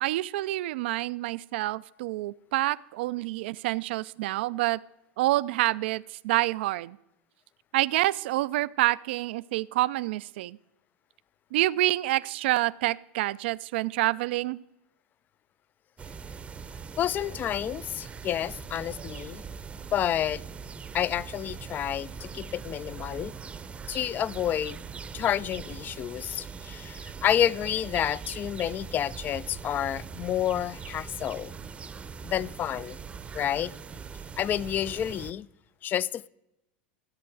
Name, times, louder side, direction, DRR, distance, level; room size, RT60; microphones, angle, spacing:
voice 1, 0.0-4.8 5.2-7.0 7.7-10.6 11.5-14.6, right 17 dB, 70° right, 0.4 m, -27 dB
sound 1, 16.0-35.3, right 6 dB, 20° right, 0.7 m, -41 dB
voice 2, 17.0-19.4 19.9-20.4 20.9-23.3 23.9-24.8 25.1-31.5 32.2-33.0 33.3-33.7 34.4-35.5 35.8-36.3, left 10 dB, 30° left, 0.3 m, -29 dB
15.0 x 7.6 x 4.7 m
hypercardioid pair, 115°, 6 cm